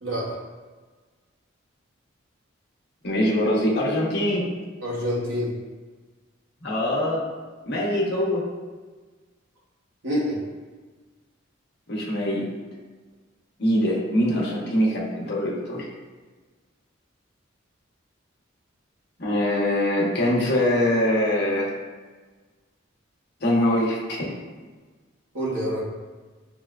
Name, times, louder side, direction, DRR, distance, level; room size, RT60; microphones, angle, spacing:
voice 1, 0.0-0.4 4.8-5.5 10.0-10.4 25.3-25.8, equal, 75° right, -5 dB, 1.0 m, -26 dB
voice 2, 3.0-4.5 6.6-7.2 7.7-8.4 11.9-12.5 13.6-15.9 19.2-21.7 23.4-24.3, left 1 dB, 55° left, -4 dB, 0.9 m, -23 dB
6.3 x 2.1 x 2.3 m, 1.4 s
head